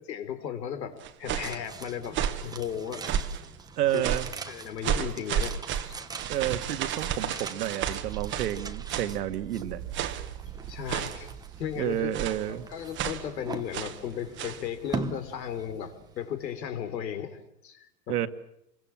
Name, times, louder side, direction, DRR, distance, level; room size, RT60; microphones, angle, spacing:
voice 1, 0.1-3.1 3.9-4.0 4.5-6.0 10.7-11.3 11.6-12.1 12.5-18.2, left 9 dB, 80° left, 10 dB, 4.3 m, -35 dB
sound 1, 1.0-1.6 2.1-2.5 3.0-3.5 4.0-4.4 4.8-8.6 8.9-9.2 9.9-10.3 10.9-11.3 12.1-12.5 12.9-13.3 13.7-14.0 14.4-14.6, right 9 dB, 25° right, 1.5 m, -31 dB
sound 2, 1.4-16.6 16.9-17.0, right 4 dB, 10° right, 1.1 m, -42 dB
voice 2, 3.8-4.3 6.3-9.8 11.8-12.7 18.1-18.3, right 12 dB, 70° right, 10 dB, 1.9 m, -30 dB
sound 3, 8.0-14.8 15.1-15.2, right 12 dB, 50° right, 2.2 m, -43 dB
27.0 x 23.0 x 7.4 m, 0.79 s
supercardioid pair, 150°, 50 cm